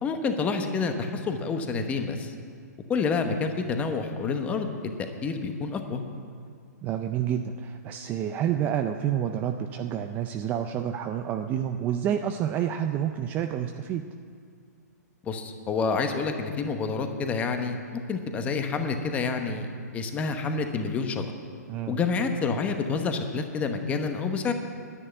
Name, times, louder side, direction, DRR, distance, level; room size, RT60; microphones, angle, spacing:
voice 1, 0.0-2.3 2.9-4.7 5.2-6.0 15.2-19.7 19.9-21.3 21.9-24.5, left 4 dB, 15° left, 6 dB, 0.9 m, -28 dB
voice 2, 6.8-14.0 21.7-22.0, right 9 dB, 20° right, 6 dB, 0.4 m, -29 dB
10.5 x 10.0 x 9.0 m, 2.2 s
hypercardioid pair, 155°, 9 cm